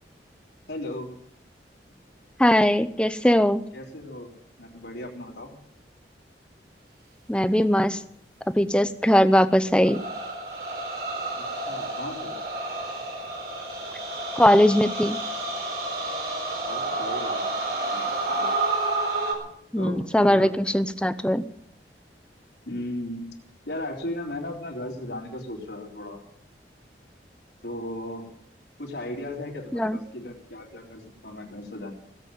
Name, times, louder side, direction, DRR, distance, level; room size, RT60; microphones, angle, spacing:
voice 1, 0.7-1.1 3.7-4.3 4.6-5.5 11.4-12.4 16.6-17.4 17.9-18.5 19.7-20.6 22.7-23.3 23.7-26.2 27.6-28.3 28.8-31.9, left 1 dB, 80° left, -2 dB, 3.6 m, -36 dB
voice 2, 2.4-3.6 7.3-8.0 8.6-10.0 14.3-15.2 19.7-21.4 29.7-30.0, equal, 5° left, 12 dB, 0.6 m, -20 dB
sound 1, 9.8-19.3, right 2 dB, 60° right, 4.3 m, -30 dB
17.5 x 8.2 x 9.0 m, 0.70 s
head